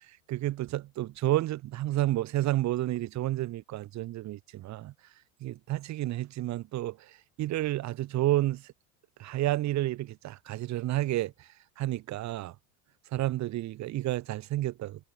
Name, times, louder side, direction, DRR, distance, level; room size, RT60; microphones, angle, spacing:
voice 1, 0.3-4.9 5.4-8.7 9.2-11.5 11.8-12.6 13.1-15.0, right 15 dB, 35° right, 7.0 m, -30 dB
supercardioid pair, 155°, 47 cm